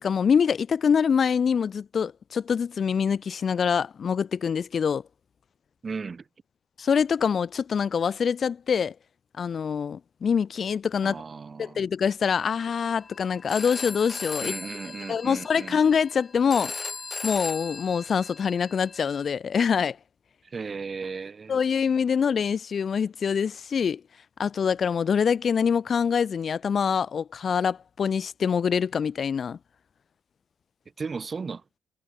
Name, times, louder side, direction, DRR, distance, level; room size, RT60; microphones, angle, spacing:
voice 1, 0.0-5.0 6.8-8.9 9.4-11.2 11.6-14.6 15.1-16.7 17.2-20.0 21.5-24.0 24.4-29.6, left 6 dB, 50° left, 1.9 m, -25 dB
voice 2, 5.8-6.2 11.0-11.8 14.4-15.8 20.4-21.6 31.0-31.6, right 5 dB, 35° right, 4.5 m, -35 dB
Telephone, 12.4-19.3, left 4 dB, 30° left, 4.2 m, -38 dB
cardioid pair, 90°, 0 cm